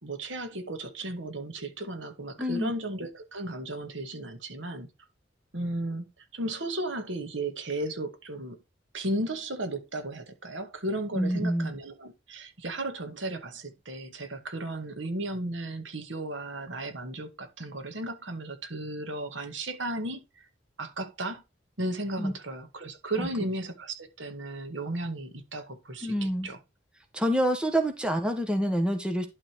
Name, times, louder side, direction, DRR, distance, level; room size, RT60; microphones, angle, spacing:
voice 1, 0.0-4.9 5.5-6.1 6.3-8.6 8.9-20.2 20.8-21.4 21.8-26.1 26.4-26.6, right 1 dB, 85° right, 2.0 m, -35 dB
voice 2, 2.4-2.7 11.1-11.7 22.2-22.3 23.2-23.3 26.0-26.5 27.1-29.3, equal, 5° right, 1.4 m, -27 dB
11.5 x 4.2 x 4.5 m
head